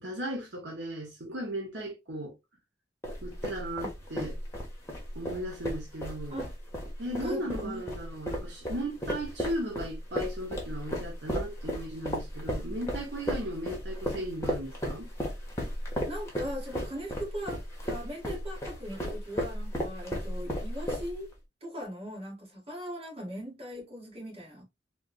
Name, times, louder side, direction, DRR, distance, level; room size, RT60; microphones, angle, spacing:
voice 1, 0.0-2.3 3.2-4.3 5.1-6.4 7.0-15.1, right 1 dB, 80° right, 0.9 m, -36 dB
sound 1, 3.0-21.3, equal, 15° left, 1.0 m, -34 dB
voice 2, 7.2-7.8 16.1-21.3 21.6-24.6, equal, 35° right, 1.8 m, -39 dB
3.5 x 2.3 x 2.5 m
head